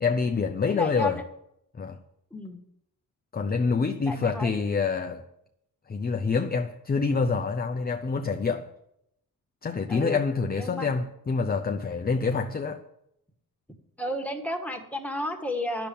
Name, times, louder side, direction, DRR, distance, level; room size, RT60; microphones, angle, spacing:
voice 1, 0.0-1.2 1.8-2.0 3.3-5.2 5.9-8.7 9.6-12.8, left 4 dB, 25° left, 0.7 m, -26 dB
voice 2, 0.6-1.2 2.3-2.6 4.1-4.5 9.9-10.2 10.5-10.9 14.0-15.9, left 1 dB, 5° left, 1.8 m, -32 dB
10.5 x 7.0 x 8.6 m
cardioid pair, 105°, 35 cm